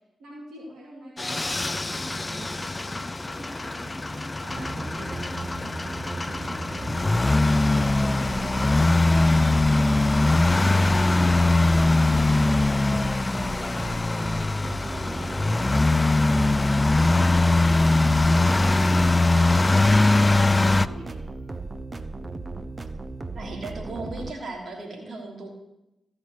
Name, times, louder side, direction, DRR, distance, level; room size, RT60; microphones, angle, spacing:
voice 1, 0.2-5.2 5.9-12.2 13.1-18.8 19.2-21.2, right 1 dB, 75° right, -4 dB, 2.6 m, -45 dB
sound 1, 1.2-20.9, left 2 dB, 30° left, 0.4 m, -21 dB
sound 2, 4.5-24.3, right 3 dB, 35° right, 0.9 m, -37 dB
voice 2, 23.3-25.5, right 2 dB, 60° right, 0 dB, 3.1 m, -36 dB
15.0 x 5.4 x 6.6 m, 0.89 s
supercardioid pair, 40°, 0 cm